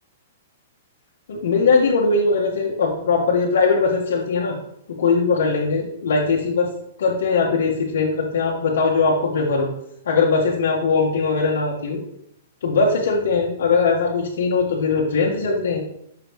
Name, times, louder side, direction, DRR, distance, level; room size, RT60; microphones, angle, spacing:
voice 1, 1.3-4.6 5.0-6.7 7.0-9.7 10.0-12.0 12.6-15.8, left 4 dB, 75° left, -3 dB, 1.2 m, -20 dB
6.0 x 5.2 x 3.0 m, 0.76 s
hypercardioid pair, 140°, 0 cm